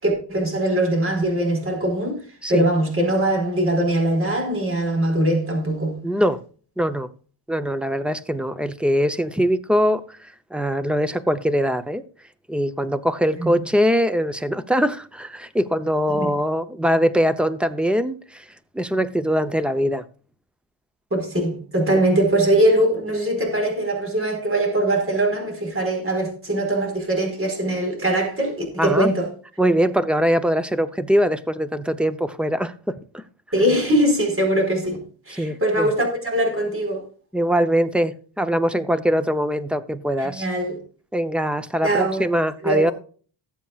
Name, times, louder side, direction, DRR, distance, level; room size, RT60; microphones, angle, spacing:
voice 1, 0.0-2.2 2.5-6.0 13.4-13.5 16.1-16.3 21.1-29.3 33.5-35.0 35.3-37.0 40.2-40.8 41.8-42.2 42.6-42.9, right 1 dB, 25° right, 4.6 m, -21 dB
voice 2, 6.0-6.4 6.8-7.1 7.5-12.0 12.5-20.0 28.8-29.1 29.6-33.2 35.3-35.9 37.3-40.5 41.1-42.9, equal, ahead, 0.6 m, -22 dB
19.0 x 7.4 x 2.4 m
wide cardioid pair, 160°, 48 cm